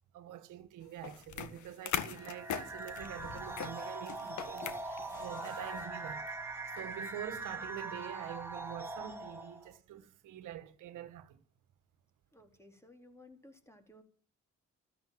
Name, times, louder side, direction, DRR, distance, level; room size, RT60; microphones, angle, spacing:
voice 1, 0.1-6.4 6.7-11.4, right 10 dB, 85° right, 1.5 m, -46 dB
sound 1, 1.0-5.8, left 9 dB, 75° left, 1.9 m, -41 dB
sound 2, 2.1-9.7, right 2 dB, 10° right, 3.7 m, -42 dB
voice 2, 12.3-14.0, left 1 dB, 10° left, 4.0 m, -57 dB
14.0 x 13.0 x 7.7 m
cardioid pair, 90°, 30 cm